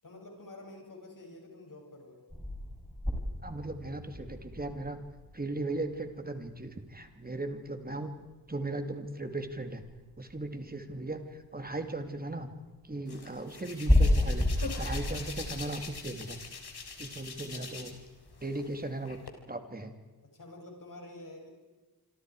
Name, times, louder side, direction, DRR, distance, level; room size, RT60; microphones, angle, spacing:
voice 1, 0.0-2.2 20.3-21.5, left 2 dB, 55° left, 1 dB, 7.4 m, -48 dB
sound 1, 2.3-8.0 8.2-18.7, left 1 dB, 5° left, 5.0 m, -33 dB
voice 2, 3.4-5.0 5.3-8.1 8.5-9.8 10.2-12.5 12.8-16.4 17.0-18.0 18.4-19.2 19.5-19.9, right 2 dB, 25° right, 7 dB, 2.7 m, -37 dB
Hands, 13.1-18.1 18.4-19.3, left 4 dB, 85° left, 3.5 m, -43 dB
27.0 x 26.0 x 5.0 m, 1.2 s
wide cardioid pair, 95°, 38 cm